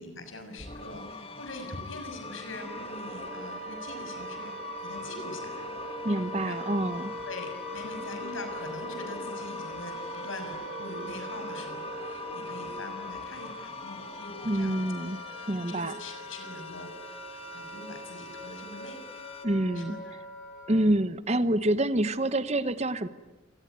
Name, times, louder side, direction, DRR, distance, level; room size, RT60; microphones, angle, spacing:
voice 1, 0.0-5.7 6.4-6.9 7.2-14.8 15.7-19.0 19.7-20.0, left 2 dB, 85° left, 6 dB, 6.5 m, -43 dB
sound 1, 0.6-19.5, left 3 dB, 30° left, 1.9 m, -43 dB
Wind instrument woodwind instrument, 2.1-20.9, equal, 5° right, 6.7 m, -41 dB
voice 2, 6.0-7.1 14.4-15.2 15.5-15.9 19.4-20.0 20.7-23.1, right 1 dB, 35° right, 14 dB, 1.0 m, -27 dB
27.0 x 21.0 x 9.4 m, 1.1 s
head